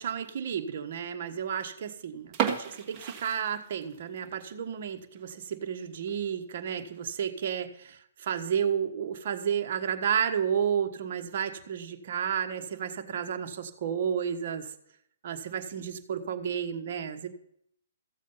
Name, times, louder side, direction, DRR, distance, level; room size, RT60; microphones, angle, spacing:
voice 1, 0.0-14.7 15.2-17.3, right 8 dB, 50° right, 5 dB, 1.3 m, -32 dB
sound 1, 2.3-4.2 4.5-4.6 5.1-5.3 5.7-5.8 6.1-6.2 6.9-7.3, right 8 dB, 25° right, 1.6 m, -33 dB
14.5 x 7.4 x 5.6 m, 0.72 s
hypercardioid pair, 155°, 0 cm